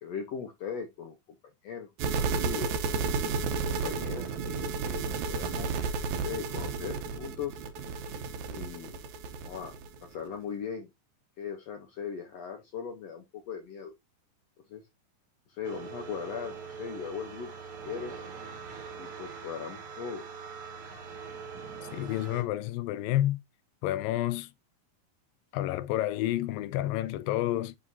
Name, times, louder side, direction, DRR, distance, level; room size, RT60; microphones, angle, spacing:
voice 1, 0.0-1.2 1.6-2.8 3.6-5.8 6.2-7.6 8.0-8.2 8.5-9.0 9.4-10.9 11.4-13.9 14.7-14.8 15.5-17.5 17.8-18.1 19.0-20.2, left 6 dB, 75° left, 1.5 m, -39 dB
sound 1, 2.0-10.1, right 5 dB, 70° right, 2.0 m, -32 dB
sound 2, 15.6-22.4, right 6 dB, 55° right, 1.6 m, -43 dB
voice 2, 21.9-23.4 23.8-24.5 25.5-27.8, left 14 dB, 90° left, 2.3 m, -29 dB
11.0 x 3.7 x 2.7 m
omnidirectional pair, 4.0 m